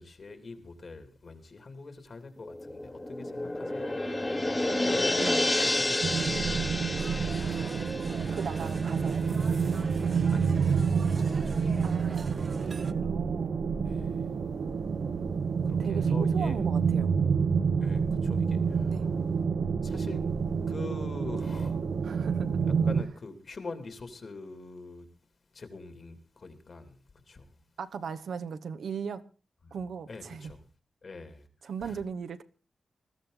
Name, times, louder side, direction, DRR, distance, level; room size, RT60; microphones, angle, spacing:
voice 1, 0.0-5.1 5.6-7.9 8.6-8.7 10.3-12.2 12.5-13.0 13.8-14.4 15.6-16.6 17.8-19.1 19.8-20.2 20.7-21.8 22.8-25.1 25.5-27.0 27.2-27.5 29.6-29.8 30.1-30.6 31.0-31.5 31.8-32.0, left 3 dB, 45° left, 2.9 m, -45 dB
sound 1, 2.4-9.4 9.7-9.8, left 1 dB, 15° left, 1.4 m, -30 dB
voice 2, 4.6-5.5 8.3-9.3 11.8-12.4 12.6-13.6 15.8-17.1 18.9-19.1 22.0-22.6 27.8-29.2 29.7-30.5 31.6-32.4, right 6 dB, 85° right, 1.2 m, -38 dB
sound 2, 6.0-23.0, right 6 dB, 65° right, 1.2 m, -28 dB
sound 3, 7.0-12.9, right 4 dB, 40° right, 0.9 m, -43 dB
21.0 x 14.5 x 4.0 m
wide cardioid pair, 155°, 0 cm